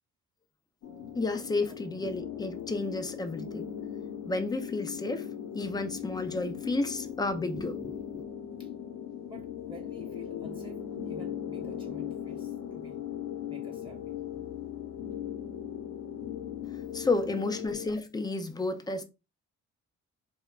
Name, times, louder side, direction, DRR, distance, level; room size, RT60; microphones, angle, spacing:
sound 1, 0.8-17.9, left 9 dB, 75° left, 0.7 m, -39 dB
voice 1, 1.2-3.7 4.3-5.2 5.5-7.9 16.9-19.0, left 3 dB, 15° left, 0.4 m, -31 dB
voice 2, 9.2-13.0 13.5-14.2, right 1 dB, 15° right, 0.9 m, -51 dB
2.8 x 2.2 x 2.3 m
cardioid pair, 90°, 30 cm